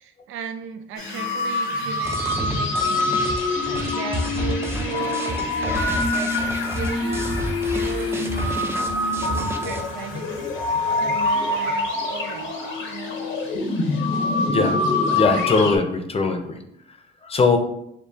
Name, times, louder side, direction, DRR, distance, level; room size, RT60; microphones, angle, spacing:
voice 1, 0.0-3.2 3.9-7.3 7.7-8.9 9.6-10.3 11.0-13.2, right 6 dB, 80° right, 7 dB, 0.5 m, -36 dB
sound 1, 1.0-15.8, left 2 dB, 80° left, 0.9 m, -25 dB
sound 2, 2.0-9.8, right 1 dB, 10° right, 0.5 m, -30 dB
voice 2, 14.5-14.8 15.1-16.6 17.2-17.6, left 3 dB, 30° left, 6 dB, 0.6 m, -20 dB
6.6 x 2.2 x 2.8 m, 0.78 s
cardioid pair, 90°, 20 cm